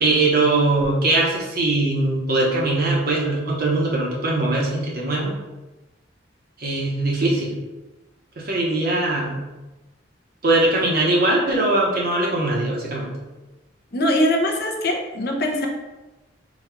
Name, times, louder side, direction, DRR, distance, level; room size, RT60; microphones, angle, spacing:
voice 1, 0.0-5.3 6.6-7.6 8.4-9.5 10.4-13.1, right 2 dB, 50° right, -3 dB, 0.9 m, -21 dB
voice 2, 13.9-15.7, left 1 dB, 50° left, 2 dB, 0.6 m, -22 dB
4.1 x 2.3 x 4.3 m, 1.1 s
head